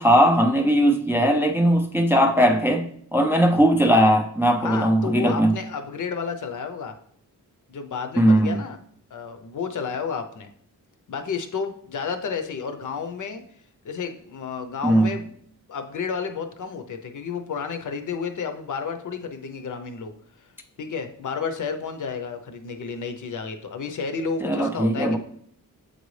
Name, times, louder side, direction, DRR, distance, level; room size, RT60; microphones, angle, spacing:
voice 1, 0.0-5.6 8.2-8.6 14.8-15.1 24.4-25.2, equal, 5° right, 0.3 m, -19 dB
voice 2, 4.6-6.9 7.7-8.8 9.1-10.5 11.1-13.4 13.8-15.3 15.7-20.1 20.8-25.2, left 5 dB, 65° left, 0.7 m, -31 dB
7.7 x 4.0 x 3.2 m
wide cardioid pair, 145°, 33 cm